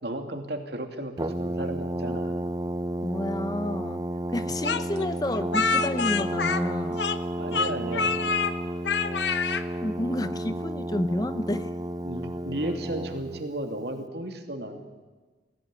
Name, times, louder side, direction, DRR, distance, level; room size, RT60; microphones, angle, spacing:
voice 1, 0.0-2.4 7.4-8.3 9.8-9.9 12.0-14.8, right 1 dB, 60° right, 5 dB, 2.7 m, -34 dB
Brass instrument, 1.2-13.4, right 1 dB, 20° right, 0.6 m, -32 dB
voice 2, 3.0-4.0 4.3-7.0 9.8-11.7, left 1 dB, 20° left, 12 dB, 0.7 m, -30 dB
Speech, 4.6-7.3 7.5-8.5 8.8-9.6, left 5 dB, 75° left, 1.0 m, -26 dB
22.0 x 16.5 x 9.7 m, 1.3 s
head